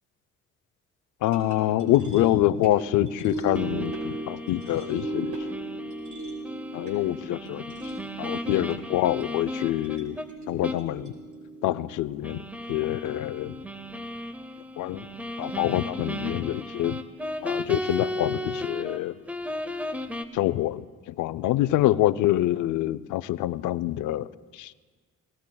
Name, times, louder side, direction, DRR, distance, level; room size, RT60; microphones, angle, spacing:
voice 1, 1.2-5.4 6.7-7.8 8.2-10.2 10.5-11.1 11.6-13.6 14.8-15.1 15.4-17.0 17.4-19.2 20.3-24.7, left 14 dB, 80° left, 16 dB, 0.5 m, -26 dB
sound 1, 1.3-13.7, right 2 dB, 70° right, 4.3 m, -38 dB
sound 2, 3.6-10.3 10.6-10.9 11.2-11.3 12.2-19.0 19.3-20.2, left 1 dB, 5° right, 0.7 m, -35 dB
25.0 x 18.5 x 2.3 m, 1.4 s
cardioid pair, 90°, 30 cm